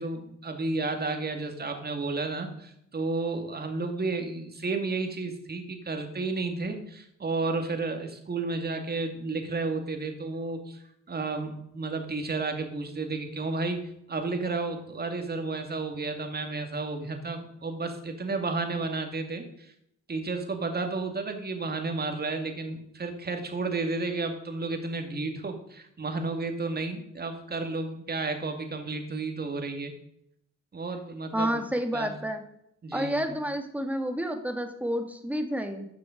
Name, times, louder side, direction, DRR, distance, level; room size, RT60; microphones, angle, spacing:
voice 1, 0.0-13.8 14.1-19.7 20.1-29.9 30.7-31.6 31.9-32.1 32.8-33.4, right 3 dB, 30° right, 5 dB, 2.3 m, -32 dB
voice 2, 31.3-32.4 32.9-35.9, equal, 5° right, 6 dB, 1.9 m, -30 dB
13.0 x 6.8 x 5.2 m, 0.76 s
cardioid pair, 90°, 30 cm